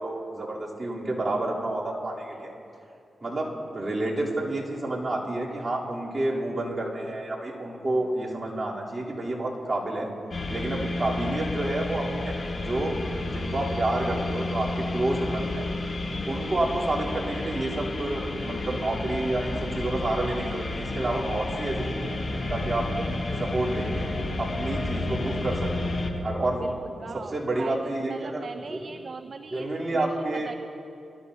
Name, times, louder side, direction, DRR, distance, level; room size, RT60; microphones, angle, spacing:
voice 1, 0.0-2.5 3.2-10.1 10.5-12.9 13.2-15.7 16.3-22.9 23.4-24.1 24.4-26.6 26.9-28.4 28.7-28.9 29.5-30.5, right 2 dB, 40° right, -6 dB, 3.4 m, -29 dB
sound 1, 10.3-26.1, left 2 dB, 55° left, 1.3 m, -31 dB
voice 2, 23.0-23.5 26.6-30.5, right 4 dB, 60° right, 11 dB, 0.3 m, -40 dB
22.5 x 13.5 x 2.8 m, 2.6 s
cardioid pair, 60°, 0 cm